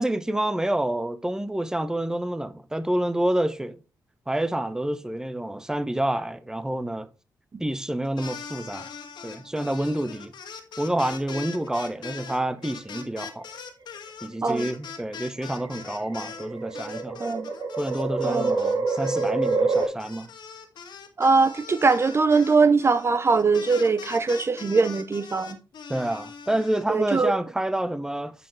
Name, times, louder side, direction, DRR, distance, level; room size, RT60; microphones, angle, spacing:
voice 1, 0.0-3.8 4.3-7.1 7.6-8.9 9.2-10.3 10.8-13.4 14.2-17.2 17.8-20.3 25.9-28.3, right 1 dB, 10° right, 0.8 m, -28 dB
sound 1, 8.0-16.5 16.7-26.8, left 6 dB, 80° left, 1.9 m, -41 dB
sound 2, 11.3-12.1 13.3-13.7 14.6-19.9, right 3 dB, 60° right, 2.8 m, -27 dB
voice 2, 17.2-17.5 18.2-18.5 21.2-25.6 26.9-27.3, right 4 dB, 35° right, 0.7 m, -21 dB
10.0 x 6.5 x 3.1 m
cardioid pair, 90°, 7 cm